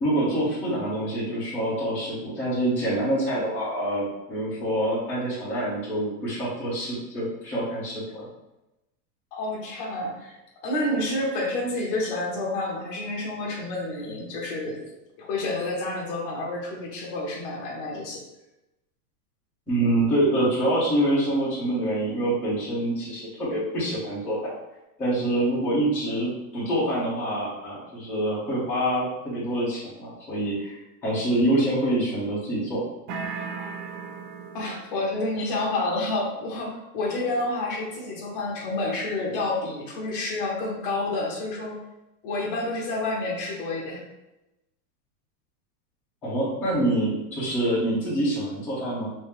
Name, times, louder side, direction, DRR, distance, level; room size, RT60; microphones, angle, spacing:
voice 1, 0.0-8.3 19.7-24.5 25.0-32.8 46.2-49.1, right 1 dB, 5° left, -12 dB, 0.7 m, -26 dB
voice 2, 9.3-10.4 10.6-14.8 15.2-18.2 34.5-41.8 42.2-44.0, left 2 dB, 35° left, -2 dB, 0.9 m, -29 dB
sound 1, 33.1-35.0, right 5 dB, 75° right, 0.8 m, -35 dB
3.1 x 2.8 x 3.5 m, 0.96 s
supercardioid pair, 170°, 48 cm